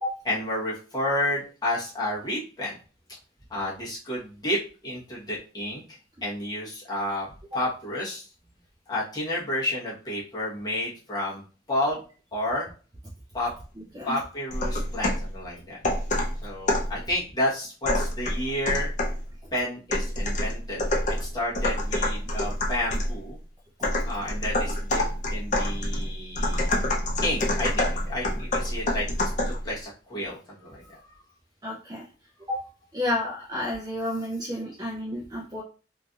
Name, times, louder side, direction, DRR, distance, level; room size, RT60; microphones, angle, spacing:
voice 1, 0.2-2.8 3.5-5.8 6.2-7.3 7.5-8.2 8.9-11.4 11.7-12.0 12.3-12.7 13.3-13.5 14.0-15.8 16.4-18.9 19.5-20.8 21.1-23.4 24.0-25.0 25.3-26.7 27.2-31.1, left 1 dB, 20° left, -6 dB, 1.0 m, -31 dB
sound 1, 14.5-15.3 15.8-17.0 17.8-19.2 19.9-23.2 23.8-29.6, left 1 dB, 40° left, 0.5 m, -26 dB
voice 2, 31.6-32.0 32.5-32.6 32.9-35.6, left 1 dB, 20° right, -4 dB, 0.5 m, -30 dB
3.2 x 2.6 x 2.3 m, 0.37 s
head